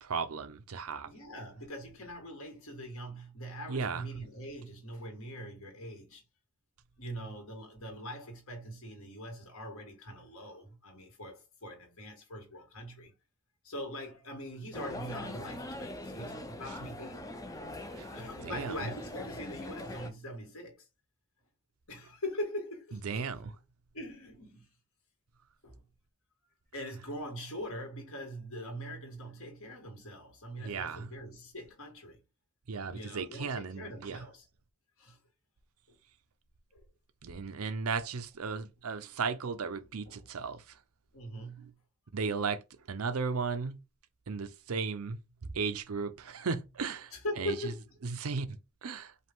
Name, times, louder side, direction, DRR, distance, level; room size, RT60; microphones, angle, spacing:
voice 1, 0.0-1.1 3.7-4.0 17.9-18.1 18.4-18.8 23.0-23.5 30.6-31.1 32.7-34.2 37.2-40.6 42.1-42.6 42.9-43.8 44.3-47.5 48.0-49.1, right 5 dB, 80° right, 0.6 m, -35 dB
voice 2, 1.0-6.2 7.0-13.1 13.6-17.3 18.1-20.8 21.9-23.4 23.9-24.7 25.6-25.8 26.7-32.2 32.9-34.5 35.0-35.2 35.9-36.0 36.7-36.8 40.0-40.3 41.1-41.7 47.1-48.0, equal, 70° left, 1.8 m, -42 dB
sound 1, 14.7-20.1, left 1 dB, 15° left, 0.4 m, -42 dB
5.2 x 2.3 x 3.6 m
head